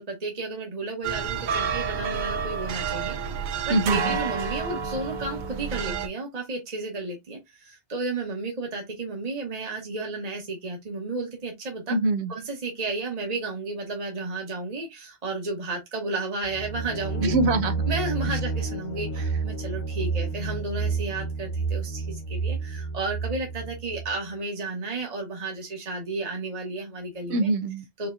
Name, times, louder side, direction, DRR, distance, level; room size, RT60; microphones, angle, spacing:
voice 1, 0.0-3.2 3.7-12.0 12.3-17.3 17.9-27.5 28.0-28.1, right 3 dB, 40° right, 1.2 m, -33 dB
sound 1, 1.0-6.1, right 6 dB, 55° right, 0.6 m, -29 dB
voice 2, 3.7-4.2 11.9-12.3 17.2-17.8 27.3-27.8, right 2 dB, 85° right, 0.9 m, -24 dB
sound 2, 16.4-24.2, right 3 dB, 55° left, 0.3 m, -30 dB
5.0 x 2.8 x 2.5 m
omnidirectional pair, 1.1 m